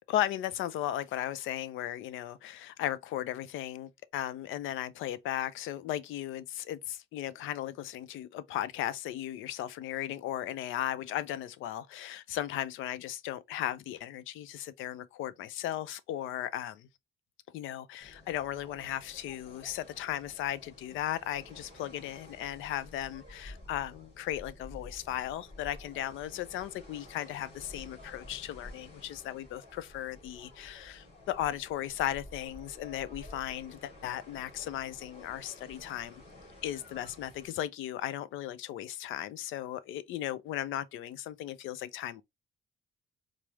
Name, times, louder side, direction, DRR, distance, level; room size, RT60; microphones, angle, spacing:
voice 1, 0.1-16.9 17.5-36.2 36.6-42.2, left 12 dB, 85° left, 0.4 m, -36 dB
sound 1, 18.0-37.5, left 1 dB, 35° left, 2.5 m, -51 dB
4.6 x 2.0 x 3.0 m
cardioid pair, 90°, 20 cm